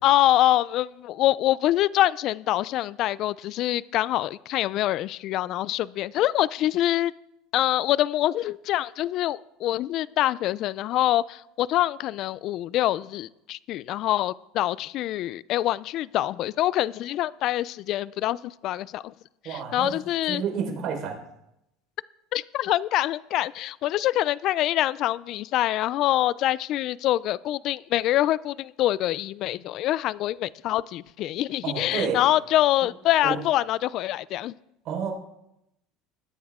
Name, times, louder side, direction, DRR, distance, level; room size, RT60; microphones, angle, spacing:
voice 1, 0.0-7.1 7.5-19.1 19.4-20.4 22.3-34.5, left 14 dB, 55° left, 20 dB, 0.4 m, -25 dB
voice 2, 19.4-19.9 20.3-21.2 31.6-32.2 33.2-33.4 34.8-35.1, right 6 dB, 50° right, 0 dB, 4.3 m, -30 dB
20.5 x 9.4 x 3.7 m, 0.83 s
supercardioid pair, 120°, 0 cm